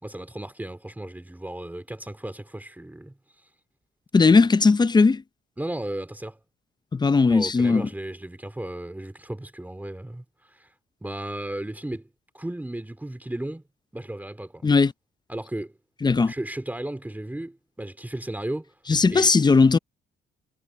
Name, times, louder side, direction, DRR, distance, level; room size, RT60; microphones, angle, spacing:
voice 1, 0.0-3.5 4.3-4.4 5.6-6.4 7.3-10.7 11.0-13.6 13.9-14.6 15.3-15.7 16.2-18.7 19.1-19.3, right 1 dB, 10° right, 3.0 m, -35 dB
voice 2, 4.1-5.2 6.9-7.8 14.6-14.9 16.0-16.3 18.9-19.8, left 4 dB, 20° left, 0.6 m, -18 dB
cardioid pair, 90°, 20 cm